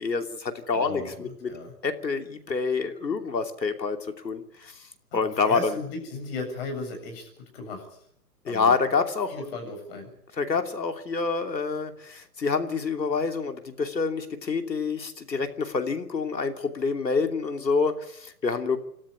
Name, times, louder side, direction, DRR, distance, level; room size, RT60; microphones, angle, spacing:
voice 1, 0.0-1.5 1.8-4.0 4.2-4.7 5.1-5.8 8.4-9.3 10.4-18.8, left 4 dB, 90° left, 7 dB, 3.0 m, -27 dB
voice 2, 0.7-1.7 5.2-7.3 7.5-7.9 8.5-8.8 9.3-10.1, left 3 dB, 35° left, 5 dB, 7.6 m, -36 dB
27.0 x 13.0 x 9.9 m, 0.72 s
hypercardioid pair, 150°, 49 cm